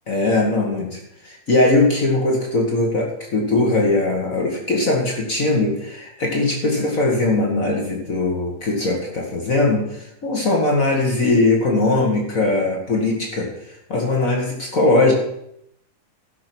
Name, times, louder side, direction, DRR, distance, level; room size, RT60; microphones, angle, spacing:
voice 1, 0.1-13.6 13.9-15.1, left 2 dB, 50° left, -1 dB, 0.9 m, -20 dB
14.5 x 6.0 x 6.1 m, 0.79 s
omnidirectional pair, 4.3 m